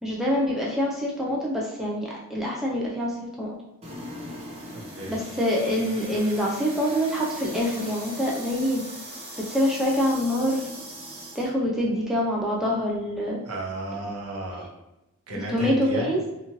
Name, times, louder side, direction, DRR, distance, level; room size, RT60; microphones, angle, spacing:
voice 1, 0.0-3.5 5.1-8.8 9.5-10.7 11.3-13.4 14.6-14.7 15.3-16.2, equal, ahead, -5 dB, 0.3 m, -25 dB
sound 1, 3.8-11.5, right 1 dB, 30° right, 0.7 m, -40 dB
voice 2, 4.7-5.2 13.5-14.7 15.3-16.2, right 2 dB, 90° right, -1 dB, 0.7 m, -33 dB
2.9 x 2.4 x 2.8 m, 0.96 s
head